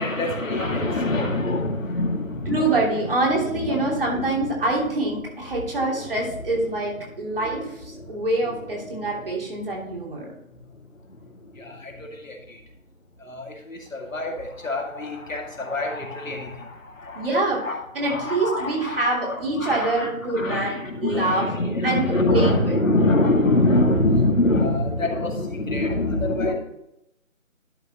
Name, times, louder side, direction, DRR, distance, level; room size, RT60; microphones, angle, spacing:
voice 1, 0.0-4.6 5.7-6.4 7.0-9.4 10.7-12.6 13.2-17.3 17.6-26.5, left 2 dB, 70° left, 1 dB, 2.2 m, -26 dB
voice 2, 2.5-10.3 17.1-17.6 17.9-21.4 21.8-22.8, right 2 dB, 40° right, -2 dB, 2.9 m, -25 dB
11.5 x 6.6 x 3.0 m, 0.83 s
figure-of-eight pair, 160°, 41 cm